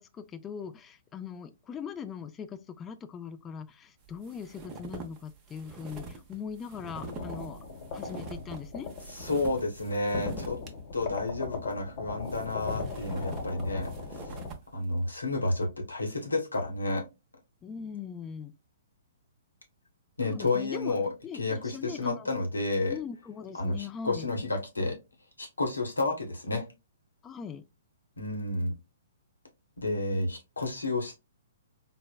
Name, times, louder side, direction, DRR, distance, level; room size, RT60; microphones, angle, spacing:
voice 1, 0.0-7.6 7.9-8.9 17.6-18.5 20.2-20.9 21.2-22.3 22.9-24.3 27.2-27.6, left 7 dB, 20° left, 0.3 m, -40 dB
sound 1, 4.0-10.7 11.1-11.2 12.0-14.7, right 3 dB, 20° right, 0.7 m, -45 dB
sound 2, 6.9-14.5, left 4 dB, 40° left, 0.9 m, -38 dB
voice 2, 9.1-10.6 10.9-14.4 14.7-17.0 20.2-21.1 21.4-22.9 23.6-25.0 25.4-26.7 28.2-28.7 29.8-31.3, left 2 dB, 90° left, 1.0 m, -31 dB
3.9 x 2.0 x 2.2 m
figure-of-eight pair, 125°, 0 cm